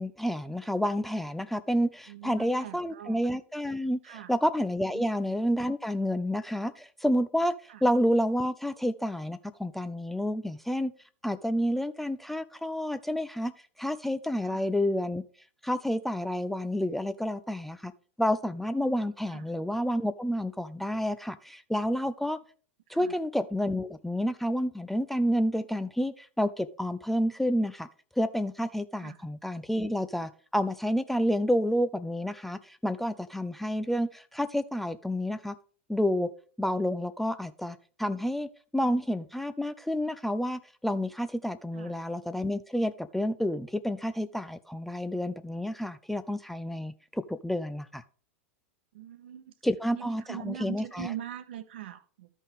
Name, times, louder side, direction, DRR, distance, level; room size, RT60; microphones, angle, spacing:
voice 1, 0.0-10.9 11.2-13.5 13.8-15.2 15.6-17.9 18.2-22.4 22.9-27.9 28.2-35.5 35.9-36.3 36.6-48.0 49.6-51.1, equal, 5° left, 0.4 m, -29 dB
voice 2, 2.1-3.3 4.0-4.3 4.9-5.1 7.7-7.8 14.4-14.6 19.3-19.5 22.9-23.2 28.9-29.2 41.7-42.0 48.9-49.5 49.9-52.3, right 11 dB, 55° right, 1.0 m, -42 dB
13.5 x 5.4 x 3.5 m
figure-of-eight pair, 90°, 7 cm